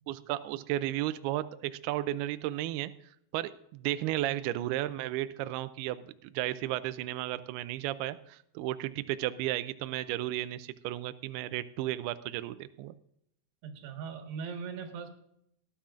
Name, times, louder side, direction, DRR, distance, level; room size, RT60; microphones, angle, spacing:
voice 1, 0.1-2.9 3.3-12.9, right 14 dB, 85° right, 12 dB, 2.3 m, -34 dB
voice 2, 13.6-15.1, right 6 dB, 70° right, 4 dB, 3.5 m, -39 dB
18.5 x 11.5 x 2.4 m, 0.75 s
omnidirectional pair, 5.1 m